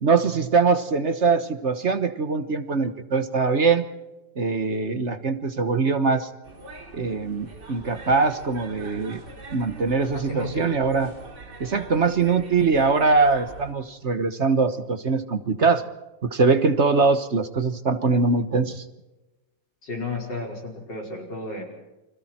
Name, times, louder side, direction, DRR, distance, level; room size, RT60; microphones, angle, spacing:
voice 1, 0.0-3.8 4.4-6.3 6.9-9.2 9.5-11.1 11.6-15.8 16.2-18.8, right 4 dB, 40° right, 10 dB, 1.4 m, -22 dB
sound 1, 6.4-13.7, right 3 dB, 65° right, 3.2 m, -42 dB
voice 2, 10.1-10.7 19.8-21.6, left 2 dB, 70° left, 0 dB, 5.6 m, -32 dB
29.5 x 25.5 x 4.5 m, 1.1 s
omnidirectional pair, 2.0 m